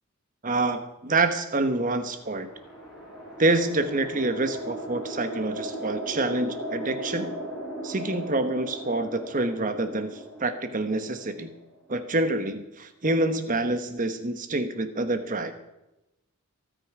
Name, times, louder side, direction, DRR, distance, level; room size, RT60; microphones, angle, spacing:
voice 1, 0.4-2.5 3.4-7.3 7.8-11.5 11.9-15.5, right 2 dB, 35° right, 9 dB, 1.2 m, -27 dB
sound 1, 1.8-12.1, right 1 dB, ahead, 6.8 m, -38 dB
23.5 x 9.2 x 4.9 m, 0.95 s
head